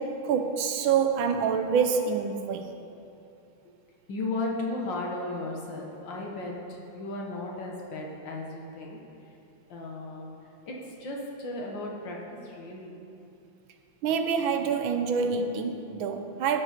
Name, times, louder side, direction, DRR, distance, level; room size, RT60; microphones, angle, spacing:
voice 1, 0.0-2.7 14.0-16.6, right 6 dB, 75° right, 6 dB, 1.4 m, -26 dB
voice 2, 4.1-9.0 9.7-10.3 10.7-12.2 12.4-13.0, left 2 dB, 65° left, -1 dB, 2.0 m, -35 dB
15.0 x 7.2 x 4.5 m, 2.7 s
omnidirectional pair, 2.3 m